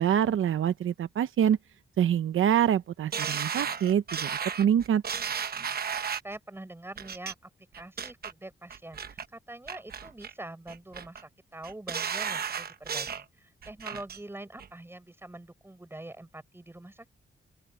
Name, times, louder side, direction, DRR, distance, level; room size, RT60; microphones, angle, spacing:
voice 1, 0.0-1.6 2.0-5.0, right 9 dB, 85° right, 0.8 m, -25 dB
sound 1, 3.1-6.4 7.0-7.3 7.7-8.3 8.7-9.3 9.7-10.3 10.7-11.2 11.6-13.2 13.6-14.2 14.6-14.7, right 7 dB, 50° right, 1.0 m, -34 dB
voice 2, 6.2-17.1, right 1 dB, 10° right, 7.6 m, -44 dB
open air
wide cardioid pair, 160°, 20 cm